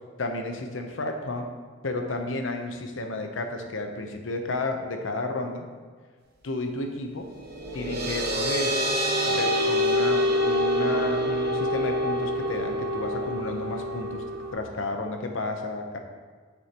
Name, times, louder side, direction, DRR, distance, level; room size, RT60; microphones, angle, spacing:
voice 1, 0.2-1.4 1.8-5.6 6.4-7.3 7.7-8.7 9.3-10.2 10.4-14.2 14.5-16.0, left 2 dB, 75° left, 4 dB, 0.8 m, -32 dB
sound 1, 7.4-14.5, equal, 50° right, 1.1 m, -26 dB
7.6 x 6.1 x 3.0 m, 1.6 s
head